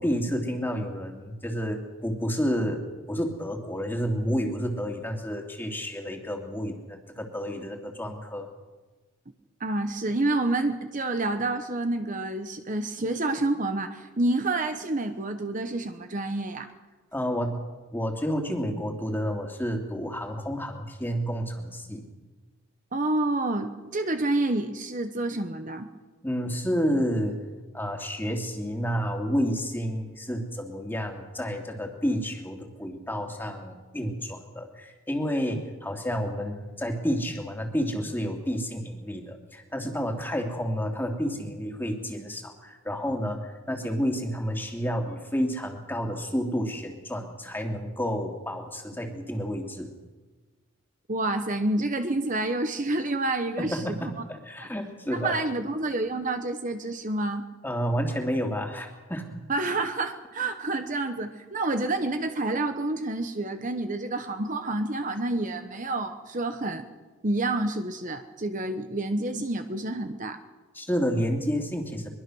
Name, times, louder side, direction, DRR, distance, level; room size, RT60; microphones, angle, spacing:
voice 1, 0.0-8.5 17.1-17.6 17.9-22.1 26.2-27.4 27.7-49.9 53.6-55.4 57.6-59.4 70.7-72.1, equal, 10° left, 2 dB, 2.7 m, -30 dB
voice 2, 9.6-16.7 22.9-25.9 51.1-54.1 55.1-57.4 59.5-66.9 67.2-70.4, right 2 dB, 35° right, 7 dB, 1.0 m, -28 dB
23.0 x 23.0 x 6.3 m, 1.2 s
head